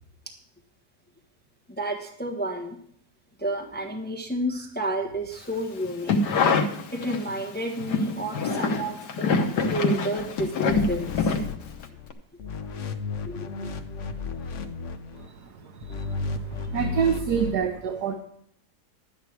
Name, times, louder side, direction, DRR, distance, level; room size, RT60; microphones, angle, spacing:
voice 1, 1.7-2.8 3.4-6.4 6.9-9.4 9.7-11.5 13.2-13.7, right 1 dB, 5° left, 2 dB, 1.1 m, -31 dB
sound 1, 5.8-7.4 7.8-11.9 12.1-12.2, left 4 dB, 85° left, 1.6 m, -25 dB
sound 2, 10.7-12.1 12.4-15.3 15.8-17.5, left 4 dB, 55° left, 1.0 m, -33 dB
voice 2, 16.7-18.2, right 7 dB, 75° right, 5 dB, 1.5 m, -25 dB
11.5 x 9.5 x 4.6 m, 0.67 s
omnidirectional pair, 1.7 m